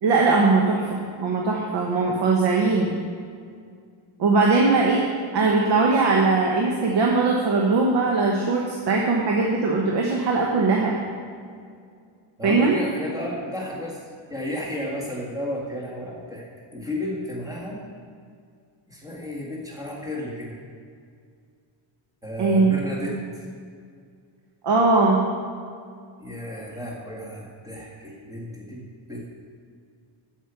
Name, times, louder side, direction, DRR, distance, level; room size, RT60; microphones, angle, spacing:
voice 1, 0.0-3.0 4.2-5.0 5.3-11.0 12.4-12.8 22.4-22.7 23.1-23.2 24.6-25.2, right 3 dB, 60° right, -1 dB, 1.2 m, -20 dB
voice 2, 12.4-14.0 14.3-17.9 18.9-20.6 22.2-23.5 26.2-29.3, left 1 dB, 5° right, -4 dB, 1.9 m, -33 dB
7.8 x 6.6 x 6.9 m, 2.2 s
cardioid pair, 165°, 48 cm